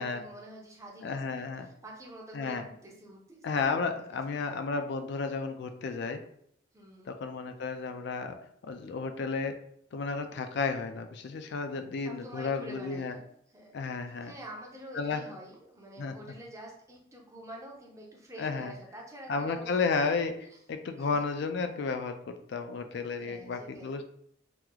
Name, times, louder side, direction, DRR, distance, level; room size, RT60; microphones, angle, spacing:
voice 1, 0.0-2.6 2.8-4.1 4.4-4.6 6.7-7.1 12.0-13.3 13.5-13.7 14.2-20.6 21.0-21.2 23.2-24.0, right 1 dB, 15° right, -1 dB, 0.6 m, -47 dB
voice 2, 1.0-1.7 2.3-2.6 3.4-6.2 7.1-8.4 8.6-9.6 9.9-13.2 13.7-14.3 15.0-15.2 16.0-16.1 18.4-18.7 19.3-20.3 20.7-24.0, left 4 dB, 55° left, 7 dB, 0.3 m, -32 dB
3.0 x 2.0 x 3.6 m, 0.69 s
head